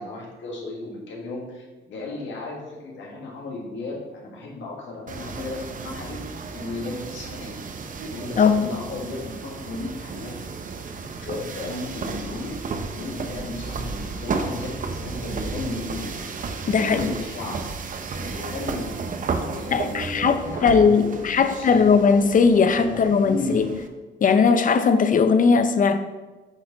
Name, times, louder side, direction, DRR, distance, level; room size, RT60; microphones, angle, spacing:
voice 1, 0.0-6.2 6.5-7.5 8.0-10.4 11.2-12.6 12.9-16.1 16.6-17.6 18.1-19.0 19.4-22.3 22.7-23.7, left 2 dB, 70° left, -1 dB, 1.8 m, -34 dB
sound 1, 5.1-23.9, right 4 dB, 45° right, 0.7 m, -33 dB
voice 2, 8.4-8.7 16.7-17.1 19.7-23.7 24.2-26.0, left 5 dB, 40° left, 10 dB, 0.6 m, -19 dB
8.1 x 4.2 x 3.9 m, 1.2 s
cardioid pair, 90°, 20 cm